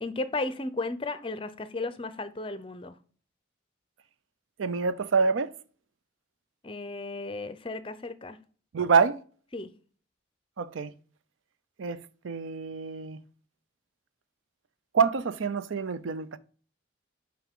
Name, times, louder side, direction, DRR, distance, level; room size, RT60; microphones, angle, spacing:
voice 1, 0.0-3.0 6.6-8.4 9.5-9.7, left 2 dB, 25° left, 0.5 m, -34 dB
voice 2, 4.6-5.5 8.7-9.2 10.6-10.9 11.8-13.2 14.9-16.4, right 5 dB, 85° right, 0.5 m, -26 dB
5.8 x 4.9 x 3.6 m
head